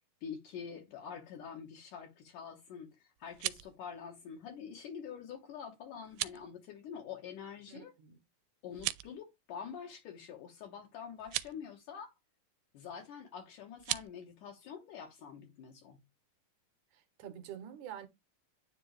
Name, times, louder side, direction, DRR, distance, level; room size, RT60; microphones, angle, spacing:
voice 1, 0.2-7.9 8.6-12.1 12.7-16.0, left 7 dB, 65° left, 2.7 m, -46 dB
sound 1, 3.2-3.8 6.0-6.4 8.7-9.2 11.2-11.5 13.8-14.1, right 18 dB, 90° right, 2.3 m, -37 dB
voice 2, 7.7-8.2 17.2-18.1, right 10 dB, 70° right, 2.1 m, -46 dB
9.7 x 3.4 x 3.2 m
omnidirectional pair, 4.0 m